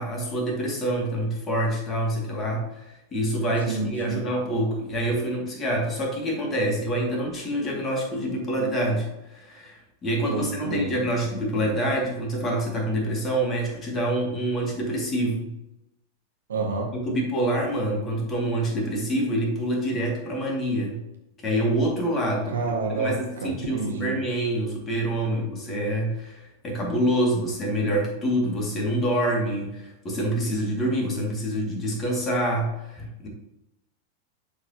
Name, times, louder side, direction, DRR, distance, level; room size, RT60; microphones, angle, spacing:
voice 1, 0.0-15.5 16.9-21.0 21.4-33.3, right 1 dB, 25° left, -1 dB, 2.2 m, -26 dB
voice 2, 3.7-4.2 10.3-10.9 16.5-16.9 22.5-23.2 23.4-24.2, right 3 dB, 65° right, -1 dB, 1.8 m, -28 dB
11.0 x 4.4 x 2.9 m, 0.91 s
figure-of-eight pair, 90°, 0 cm